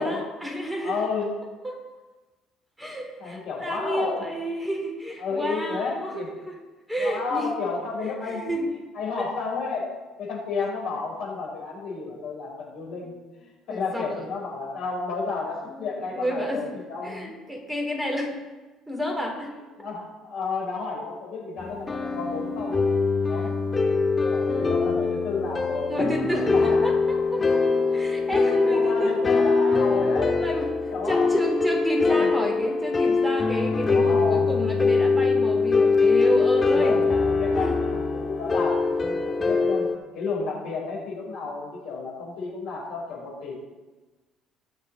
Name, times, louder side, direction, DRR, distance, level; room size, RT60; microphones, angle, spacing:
voice 1, 0.0-1.0 1.6-1.8 2.8-6.5 6.9-7.5 8.0-8.7 9.2-9.3 12.9-13.1 13.7-14.2 15.7-18.3 18.9-19.6 25.9-27.6 27.9-29.1 30.4-30.7 31.1-37.0 37.5-37.8, equal, 10° right, 1 dB, 4.0 m, -30 dB
voice 2, 0.8-1.3 3.2-4.2 5.2-6.3 7.0-8.4 8.9-9.9 10.2-13.2 13.7-17.3 19.8-22.7 23.3-23.5 24.2-26.8 28.6-30.4 30.9-31.3 32.0-32.3 33.8-34.5 36.6-39.9 40.1-43.5, left 4 dB, 60° left, -2 dB, 4.6 m, -31 dB
sound 1, 21.6-40.0, left 4 dB, 25° left, 1.8 m, -23 dB
19.5 x 6.8 x 4.1 m, 1.2 s
hypercardioid pair, 55°, 0 cm